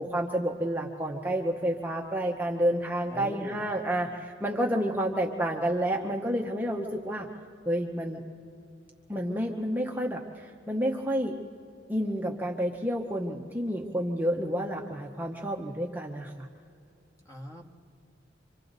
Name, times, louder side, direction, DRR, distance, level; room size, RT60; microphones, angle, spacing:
voice 1, 0.0-7.3 7.7-8.2 9.1-11.3 11.9-16.5, equal, 10° right, 0 dB, 0.9 m, -30 dB
voice 2, 3.1-3.7 17.2-17.7, equal, 20° left, 1 dB, 1.8 m, -42 dB
27.5 x 25.0 x 4.0 m, 2.4 s
head